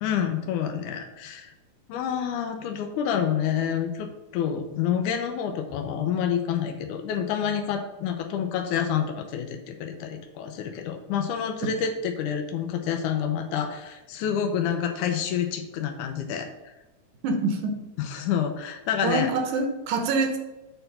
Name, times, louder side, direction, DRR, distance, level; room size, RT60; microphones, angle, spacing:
voice 1, 0.0-1.5 1.9-16.7 18.0-19.3, left 8 dB, 90° left, 5 dB, 2.2 m, -28 dB
voice 2, 17.2-17.8 19.0-20.4, right 3 dB, 85° right, 4 dB, 2.5 m, -25 dB
7.8 x 4.5 x 5.5 m, 1.0 s
omnidirectional pair, 3.5 m